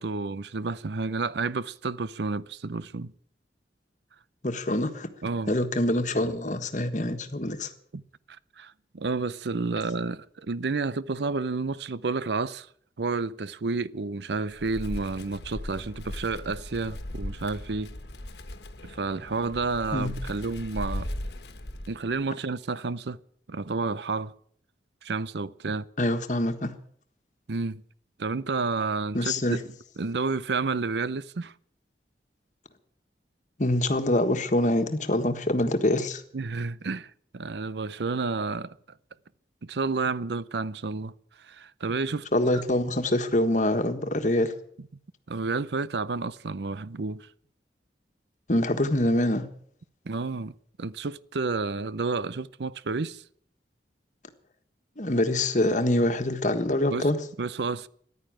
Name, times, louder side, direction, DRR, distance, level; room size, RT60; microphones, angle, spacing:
voice 1, 0.0-3.1 5.2-5.6 7.9-8.0 8.6-12.7 13.0-17.9 18.8-21.1 21.9-23.2 23.5-24.3 25.0-25.9 27.5-27.8 28.2-31.5 36.3-38.7 39.6-41.1 41.4-42.6 44.8-44.9 45.3-47.3 50.1-50.5 50.8-53.2 56.9-57.1 57.4-57.9, right 4 dB, 70° right, 0.6 m, -30 dB
voice 2, 4.4-5.1 5.5-7.7 19.9-20.1 26.0-26.7 29.1-29.6 33.6-36.2 42.3-44.5 48.5-49.4 55.0-57.2, left 1 dB, 45° left, 1.5 m, -25 dB
Wind, 14.5-22.3, left 1 dB, 70° left, 1.4 m, -38 dB
14.5 x 11.0 x 8.9 m
head